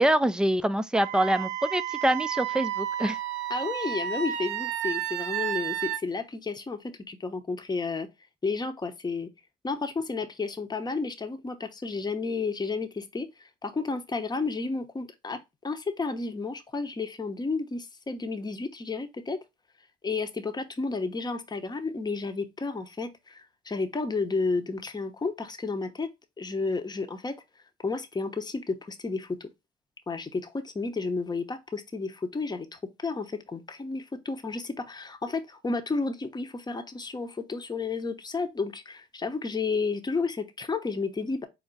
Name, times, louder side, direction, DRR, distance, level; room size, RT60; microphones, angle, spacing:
voice 1, 0.0-3.2, right 1 dB, 5° right, 0.4 m, -25 dB
Wind instrument woodwind instrument, 0.9-6.0, right 11 dB, 80° right, 0.5 m, -32 dB
voice 2, 3.5-8.1 8.4-9.3 9.6-19.4 20.0-26.1 26.4-27.3 27.8-29.5 30.1-41.5, left 4 dB, 20° left, 0.8 m, -32 dB
4.5 x 2.3 x 3.8 m
supercardioid pair, 65°, 19 cm